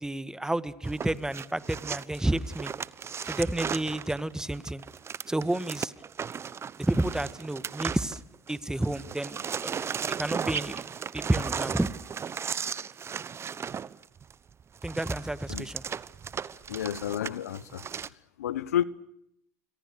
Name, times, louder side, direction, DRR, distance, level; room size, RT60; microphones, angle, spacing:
voice 1, 0.0-2.7 3.2-4.8 5.3-5.9 6.9-8.2 8.5-10.8 11.1-11.9 14.8-15.8, right 1 dB, 5° right, 1.7 m, -30 dB
sound 1, 0.8-8.6 8.8-18.1, right 7 dB, 35° right, 1.0 m, -36 dB
voice 2, 16.7-17.8 18.4-18.8, left 10 dB, 90° left, 1.0 m, -30 dB
28.0 x 25.0 x 6.5 m
hypercardioid pair, 75°, 8 cm